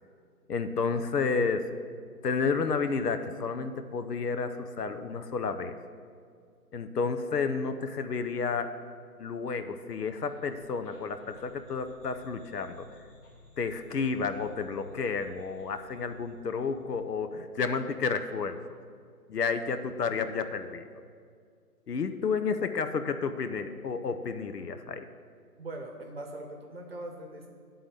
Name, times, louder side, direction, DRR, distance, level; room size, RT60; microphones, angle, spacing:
voice 1, 0.5-1.7 2.2-5.8 6.7-8.7 9.2-12.9 13.6-18.6 19.3-20.9 21.9-25.1, left 5 dB, 75° left, 9 dB, 0.7 m, -31 dB
sound 1, 10.2-17.3, left 2 dB, 35° left, 1.1 m, -57 dB
voice 2, 25.6-27.5, right 2 dB, 40° right, 2 dB, 0.9 m, -41 dB
9.6 x 3.9 x 6.7 m, 2.2 s
figure-of-eight pair, 160°, 48 cm